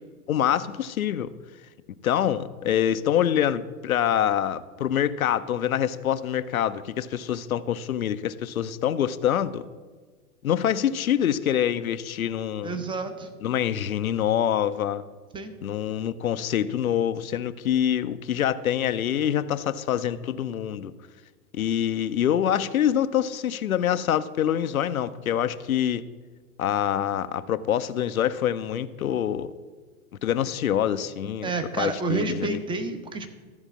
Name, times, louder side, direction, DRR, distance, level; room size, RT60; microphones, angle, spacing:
voice 1, 0.3-1.3 2.0-9.6 10.4-12.8 13.4-15.0 15.6-20.9 21.5-26.0 26.6-29.5 30.2-31.5 31.8-32.6, left 10 dB, 70° left, 13 dB, 0.7 m, -25 dB
voice 2, 12.6-13.3 15.3-15.5 31.4-33.3, right 3 dB, 10° right, 8 dB, 0.9 m, -29 dB
14.0 x 4.8 x 7.3 m, 1.4 s
figure-of-eight pair, 105°, 44 cm